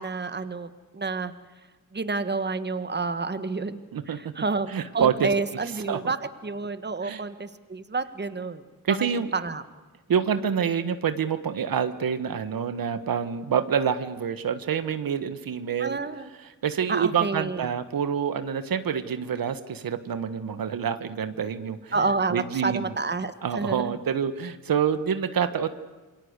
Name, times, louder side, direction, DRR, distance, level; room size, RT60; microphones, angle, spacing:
voice 1, 0.0-1.3 1.9-3.8 4.1-9.0 9.3-9.6 15.8-16.3 16.9-17.7 21.9-24.0, right 4 dB, 30° right, 12 dB, 1.5 m, -29 dB
voice 2, 4.7-5.3 5.9-6.0 7.0-7.2 8.8-9.3 10.1-16.0 16.6-21.9 22.3-22.9 23.4-25.7, right 7 dB, 85° right, 11 dB, 1.4 m, -27 dB
27.5 x 22.5 x 8.2 m, 1.2 s
wide cardioid pair, 100°, 34 cm